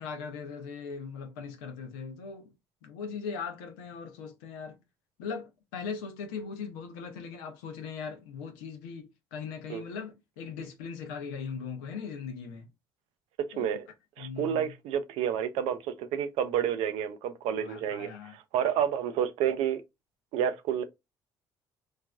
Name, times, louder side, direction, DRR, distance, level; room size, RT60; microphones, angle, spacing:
voice 1, 0.0-2.5 2.8-4.8 5.2-12.7 13.5-13.7 14.2-14.7 17.6-18.3, left 5 dB, 90° left, 0.6 m, -39 dB
voice 2, 13.6-13.9 14.2-19.8 20.3-20.8, right 9 dB, 75° right, 0.5 m, -30 dB
3.2 x 2.5 x 2.2 m
supercardioid pair, 65°, 10 cm